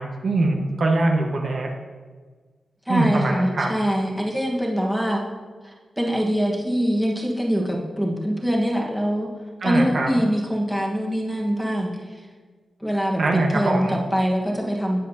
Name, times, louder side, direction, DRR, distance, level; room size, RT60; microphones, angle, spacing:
voice 1, 0.0-1.7 2.9-3.7 9.6-10.1 13.2-13.9, right 2 dB, 55° right, 1 dB, 1.3 m, -22 dB
voice 2, 2.8-5.2 5.6-9.3 9.6-12.2 12.8-15.0, equal, ahead, -2 dB, 1.4 m, -24 dB
18.5 x 7.4 x 2.8 m, 1.5 s
wide cardioid pair, 155°, 0 cm